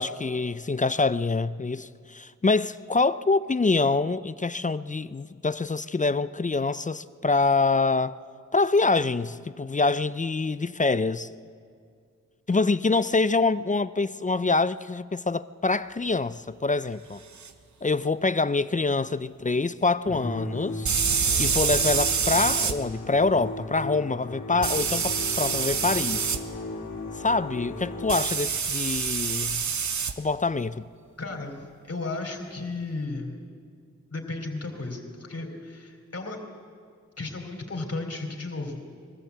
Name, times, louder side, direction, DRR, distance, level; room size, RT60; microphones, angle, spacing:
voice 1, 0.0-8.1 8.5-11.3 12.5-17.2 17.8-20.9 21.4-26.2 27.2-29.7 30.2-30.8, left 3 dB, 25° left, 0.5 m, -25 dB
sound 1, 17.4-17.5 20.8-22.7 24.6-26.4 28.1-30.1, right 6 dB, 70° right, 1.0 m, -26 dB
Musical instrument, 20.1-28.6, left 2 dB, 85° left, 2.1 m, -36 dB
voice 2, 31.2-33.4 34.1-36.4 37.2-38.8, left 3 dB, 55° left, 3.4 m, -34 dB
22.0 x 14.5 x 8.2 m
cardioid pair, 65°, 30 cm